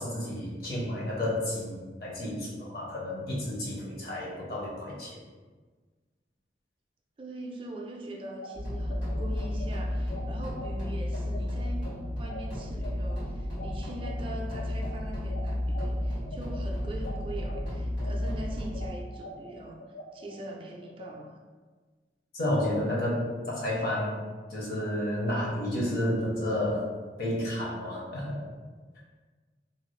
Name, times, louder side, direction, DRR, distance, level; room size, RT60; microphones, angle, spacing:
voice 1, 0.0-5.2 22.3-24.2 24.5-26.9 27.2-28.5, left 1 dB, 55° left, -5 dB, 0.8 m, -31 dB
voice 2, 7.2-19.8 20.1-21.4, right 1 dB, 30° right, 0 dB, 0.3 m, -42 dB
sound 1, 8.2-17.6 18.0-21.1, left 1 dB, 70° left, 0.3 m, -44 dB
sound 2, 8.5-18.9, left 1 dB, 90° left, 1.3 m, -32 dB
2.6 x 2.3 x 3.1 m, 1.4 s
head